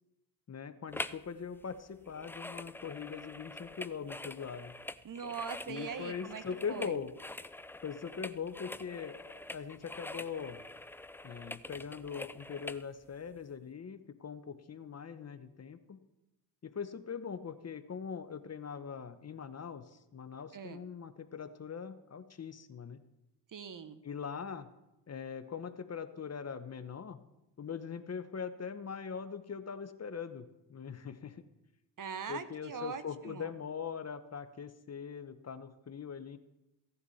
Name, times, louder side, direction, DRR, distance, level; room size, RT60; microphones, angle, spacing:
voice 1, 0.5-4.7 5.7-7.1 7.8-10.6 11.2-16.0 16.6-23.0 24.0-24.7 25.1-27.2 27.6-31.4 32.3-36.4, left 6 dB, 35° left, 11 dB, 0.9 m, -41 dB
sound 1, 0.9-1.3 1.5-12.8 13.4-13.5, left 2 dB, 5° left, 0.3 m, -45 dB
voice 2, 5.0-6.4 6.7-7.0 20.5-20.8 23.5-24.0 32.0-33.5, right 6 dB, 45° right, 12 dB, 1.0 m, -41 dB
16.0 x 9.5 x 4.2 m, 0.95 s
cardioid pair, 75°, 44 cm